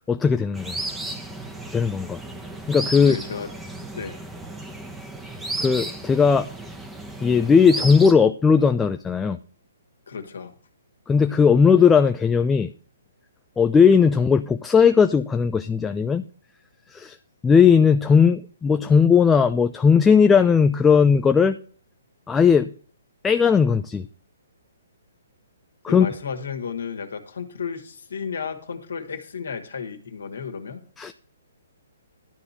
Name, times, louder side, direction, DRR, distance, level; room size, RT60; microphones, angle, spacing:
voice 1, 0.1-0.8 1.7-2.2 2.7-3.2 5.6-6.5 7.2-9.4 11.1-12.7 13.6-16.2 16.9-17.2 17.4-21.6 22.3-22.7 23.2-24.1 25.8-26.1 31.0-31.1, left 6 dB, 10° left, 8 dB, 0.5 m, -17 dB
sound 1, 0.5-8.1, right 2 dB, 5° right, 1.2 m, -34 dB
voice 2, 2.9-3.5 3.9-4.2 10.1-10.5 25.9-30.8, left 6 dB, 70° left, 5 dB, 2.0 m, -33 dB
12.0 x 4.1 x 7.4 m, 0.42 s
hypercardioid pair, 135°, 0 cm